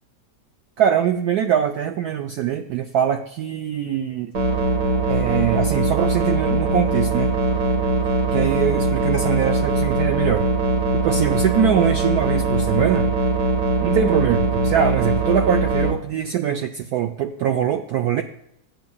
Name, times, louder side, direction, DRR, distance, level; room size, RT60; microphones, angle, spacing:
voice 1, 0.8-4.3 5.1-7.3 8.3-10.5 11.0-13.1 13.8-18.2, right 9 dB, 70° right, 6 dB, 1.0 m, -22 dB
sound 1, 4.3-15.9, right 2 dB, 50° right, 1.6 m, -21 dB
15.0 x 10.5 x 2.3 m, 0.80 s
omnidirectional pair, 2.0 m